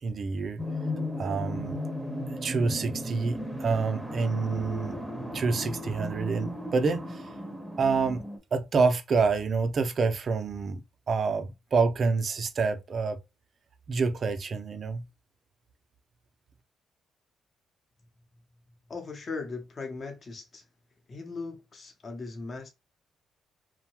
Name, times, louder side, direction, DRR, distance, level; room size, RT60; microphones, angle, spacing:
voice 1, 0.0-0.6 1.2-1.8 2.3-5.0 5.3-7.3 7.8-8.2 8.5-13.2 13.9-15.0, right 4 dB, 50° right, 0.5 m, -27 dB
sound 1, 0.6-8.4, left 1 dB, ahead, 0.7 m, -36 dB
voice 2, 18.9-20.6 21.1-22.7, left 4 dB, 40° left, 0.8 m, -38 dB
2.7 x 2.1 x 2.9 m
cardioid pair, 90°, 0 cm